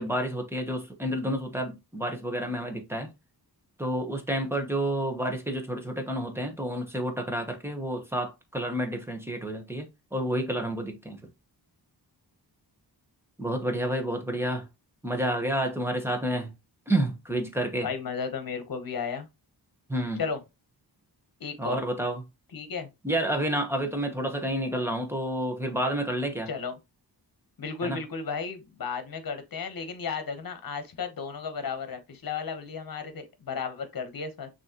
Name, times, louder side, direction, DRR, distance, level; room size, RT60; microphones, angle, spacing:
voice 1, 0.0-3.1 3.8-9.9 10.1-11.2 13.4-14.7 15.0-16.5 16.9-17.9 19.9-20.2 21.6-22.2 23.0-26.5 27.8-28.0, right 1 dB, 5° right, 1.1 m, -29 dB
voice 2, 17.8-19.3 20.2-20.4 21.4-21.8 22.5-22.9 26.5-26.8 27.6-34.5, left 5 dB, 60° left, 1.2 m, -34 dB
6.2 x 2.9 x 3.0 m
wide cardioid pair, 125°, 40 cm